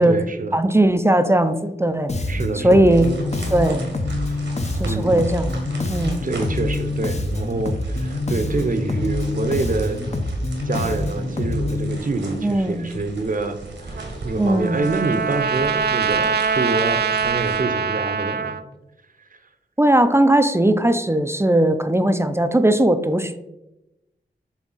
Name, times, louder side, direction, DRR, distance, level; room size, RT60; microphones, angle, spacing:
voice 1, 0.0-0.6 2.3-3.1 4.3-4.4 4.8-5.3 6.2-10.0 10.6-18.6, right 3 dB, 50° right, 7 dB, 0.8 m, -26 dB
voice 2, 0.5-2.1 2.5-3.1 3.5-3.8 4.8-5.5 5.9-6.2 12.4-12.9 14.4-14.8 19.8-23.4, right 1 dB, 15° right, 9 dB, 0.5 m, -18 dB
Bass guitar, 2.1-12.0, left 2 dB, 35° left, 0.7 m, -26 dB
sound 1, 2.9-17.6, right 2 dB, 80° right, 1.6 m, -39 dB
Trumpet, 14.0-18.6, right 6 dB, 65° right, 0.5 m, -23 dB
7.3 x 3.5 x 3.9 m, 0.94 s
cardioid pair, 60°, 18 cm